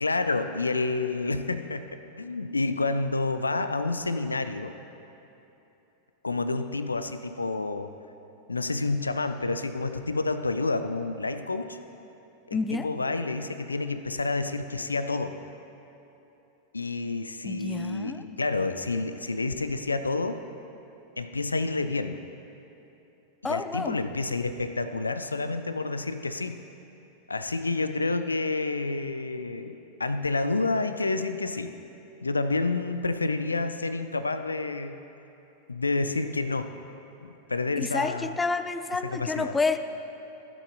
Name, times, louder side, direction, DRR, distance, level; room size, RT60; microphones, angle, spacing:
voice 1, 0.0-4.7 6.2-7.9 8.5-11.8 12.5-15.4 16.7-20.4 21.2-22.2 23.4-26.6 27.3-31.8 32.2-35.0 35.7-36.7 37.2-38.4 39.0-39.6, left 3 dB, 80° left, 10 dB, 0.4 m, -29 dB
voice 2, 12.5-12.9 17.4-18.2 23.4-24.0 37.8-39.8, left 4 dB, 10° left, 11 dB, 0.4 m, -29 dB
15.0 x 7.0 x 3.9 m, 3.0 s
figure-of-eight pair, 90°, 0 cm